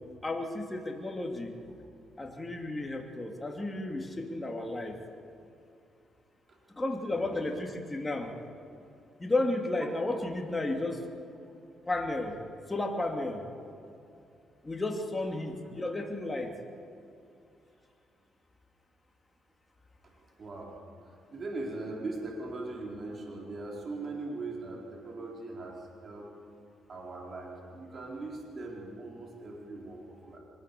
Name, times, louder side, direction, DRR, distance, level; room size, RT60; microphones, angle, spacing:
voice 1, 0.2-1.5 2.2-4.9 6.8-8.3 9.2-11.0 11.9-12.3 12.7-13.4 14.6-16.5, left 2 dB, 20° left, 1 dB, 2.9 m, -32 dB
voice 2, 20.4-20.8 21.3-26.3 26.9-30.4, right 2 dB, 45° right, -1 dB, 4.3 m, -40 dB
24.5 x 19.0 x 7.0 m, 2.6 s
cardioid pair, 90°, 0 cm